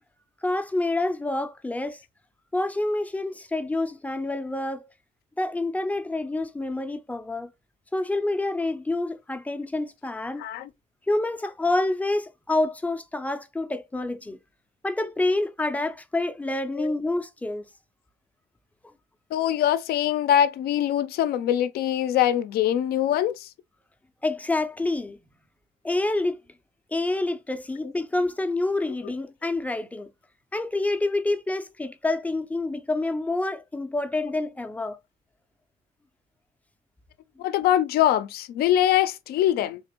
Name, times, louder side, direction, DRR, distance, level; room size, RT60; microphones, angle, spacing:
voice 1, 0.4-2.0 2.5-4.9 5.4-7.5 7.9-10.4 11.1-14.4 14.8-17.6 24.2-25.2 25.8-26.4 26.9-30.1 30.5-35.0, left 2 dB, 10° left, 0.4 m, -27 dB
voice 2, 10.4-10.7 16.8-16.9 19.3-23.5 37.4-39.8, left 11 dB, 65° left, 0.4 m, -23 dB
3.8 x 2.5 x 2.9 m
cardioid pair, 110°, 17 cm